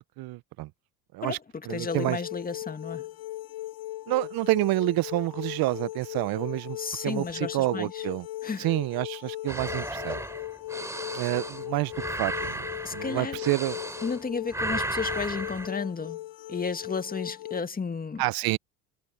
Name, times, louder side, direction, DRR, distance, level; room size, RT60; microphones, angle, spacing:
voice 1, 0.2-0.7 1.1-1.4 1.7-2.2 4.1-6.8 7.0-8.3 8.6-10.2 11.1-11.9 12.2-12.6 12.9-13.8 18.2-18.6, right 19 dB, 50° right, 0.8 m, -28 dB
voice 2, 1.2-3.1 6.8-8.1 8.4-8.7 12.8-13.4 14.0-16.2 16.5-18.2, left 5 dB, 20° left, 2.0 m, -33 dB
sound 1, 1.7-17.6, left 16 dB, 50° left, 2.8 m, -38 dB
sound 2, 9.5-14.2 14.5-15.7, right 1 dB, 5° right, 3.7 m, -34 dB
hypercardioid pair, 80°, 45 cm